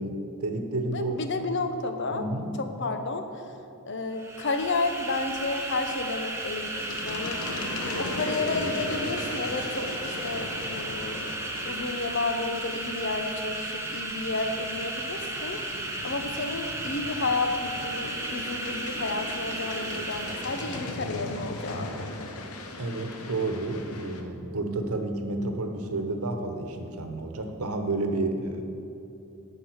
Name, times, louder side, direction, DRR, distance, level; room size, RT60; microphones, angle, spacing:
voice 1, 0.0-1.4 2.1-2.5 22.8-28.6, right 2 dB, 75° right, 5 dB, 1.1 m, -31 dB
voice 2, 0.9-2.2 2.6-3.4 3.9-7.4 8.0-11.3 11.6-15.6 16.0-22.4, left 3 dB, 55° left, 7 dB, 0.9 m, -31 dB
sound 1, 4.1-21.0, right 2 dB, 10° right, 1.0 m, -34 dB
sound 2, 6.7-24.2, left 2 dB, 80° left, 1.0 m, -38 dB
11.0 x 5.4 x 7.9 m, 2.8 s
head